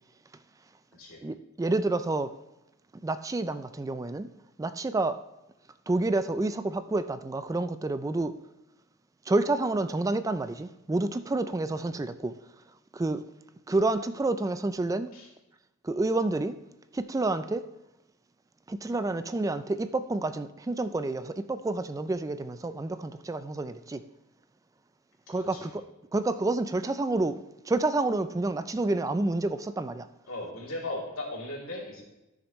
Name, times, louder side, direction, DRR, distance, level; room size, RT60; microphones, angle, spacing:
voice 1, 1.2-2.3 3.0-4.3 4.6-5.2 5.9-8.4 9.3-12.3 12.9-13.2 13.7-15.1 15.8-16.6 16.9-17.7 18.7-24.0 25.3-25.8 26.1-27.4 27.7-30.1, right 2 dB, 15° right, 0.3 m, -29 dB
voice 2, 25.3-25.7 30.3-32.0, left 2 dB, 90° left, 2.8 m, -37 dB
14.0 x 6.5 x 3.1 m
head